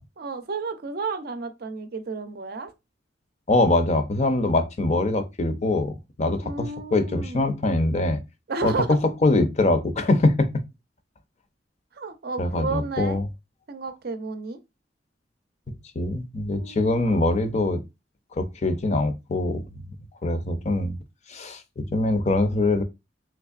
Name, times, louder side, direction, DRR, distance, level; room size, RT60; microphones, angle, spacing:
voice 1, 0.2-2.7 6.4-7.5 8.5-9.0 11.9-13.2 13.7-14.6 16.5-17.0, right 4 dB, 55° right, 0.5 m, -32 dB
voice 2, 3.5-8.2 8.6-10.5 12.4-13.2 16.0-17.8 18.4-19.6 20.2-20.9 21.3-22.8, left 2 dB, 35° left, 0.5 m, -23 dB
3.5 x 3.1 x 2.4 m
head